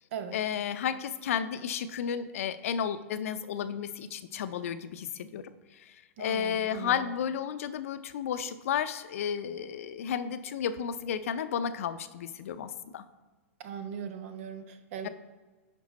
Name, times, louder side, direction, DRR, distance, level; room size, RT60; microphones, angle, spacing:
voice 1, 0.3-13.0 15.0-15.1, left 8 dB, 65° left, 11 dB, 0.6 m, -33 dB
voice 2, 6.2-7.0 13.6-15.1, right 7 dB, 60° right, 9 dB, 0.9 m, -39 dB
10.5 x 4.5 x 4.1 m, 1.3 s
hypercardioid pair, 110°, 8 cm